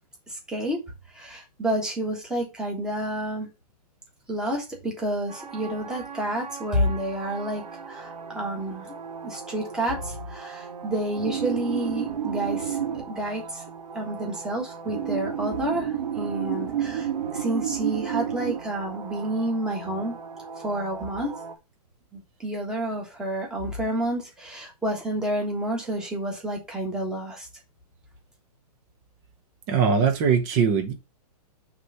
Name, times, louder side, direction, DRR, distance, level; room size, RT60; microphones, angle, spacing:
voice 1, 0.3-0.8 1.1-3.5 4.3-9.0 9.2-12.8 13.1-13.6 13.9-20.2 20.6-21.3 22.1-27.5, right 1 dB, 5° right, 1.4 m, -29 dB
sound 1, 5.3-21.6, right 8 dB, 75° right, 1.7 m, -33 dB
voice 2, 29.7-30.9, right 6 dB, 20° right, 0.9 m, -21 dB
6.1 x 3.3 x 5.7 m
hypercardioid pair, 170°, 20 cm